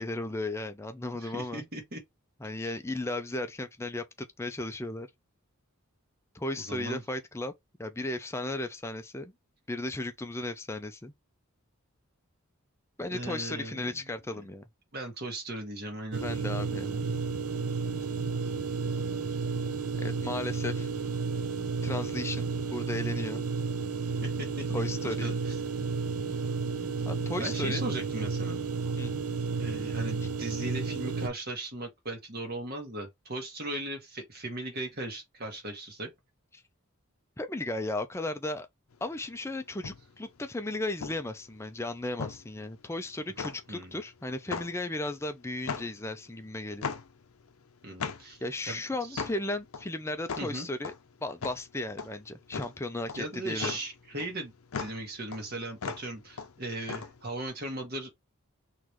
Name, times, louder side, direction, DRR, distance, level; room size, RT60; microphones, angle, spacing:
voice 1, 0.0-1.7 2.4-5.1 6.3-7.5 7.8-9.3 9.7-11.1 13.0-14.6 16.2-17.1 20.0-20.9 21.8-23.5 24.7-25.3 27.0-27.8 29.0-29.1 37.4-38.7 39.0-46.9 48.4-50.9 51.2-53.7, left 2 dB, 10° left, 0.5 m, -35 dB
voice 2, 1.2-2.0 2.6-2.7 6.6-7.0 13.1-14.1 14.9-16.2 24.2-24.5 25.0-25.5 27.4-28.6 29.6-36.1 43.7-43.9 47.8-49.2 50.4-50.7 53.2-54.5 54.8-58.1, right 2 dB, 45° right, 1.4 m, -38 dB
sound 1, 16.1-31.3, right 4 dB, 80° right, 0.7 m, -32 dB
sound 2, 38.9-57.5, left 5 dB, 75° left, 0.6 m, -39 dB
3.9 x 3.1 x 3.1 m
head